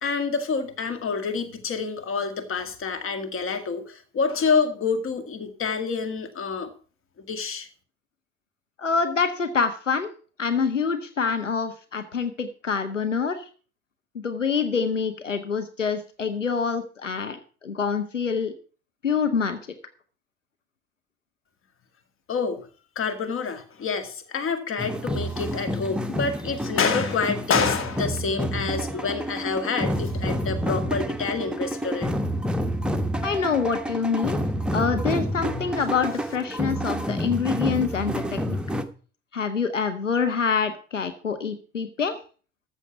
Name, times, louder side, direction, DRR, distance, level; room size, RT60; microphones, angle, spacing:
voice 1, 0.0-6.7 7.3-7.7 22.3-22.6 23.0-32.1 35.4-35.7, left 5 dB, 35° left, 9 dB, 2.0 m, -27 dB
voice 2, 8.8-10.1 10.4-13.5 14.1-18.5 19.0-19.6 33.2-34.4 34.7-38.6 39.3-42.2, left 5 dB, 85° left, 9 dB, 0.8 m, -26 dB
sound 1, 24.8-38.8, equal, 5° right, 1.0 m, -29 dB
13.5 x 6.7 x 5.9 m, 0.39 s
figure-of-eight pair, 60°, 36 cm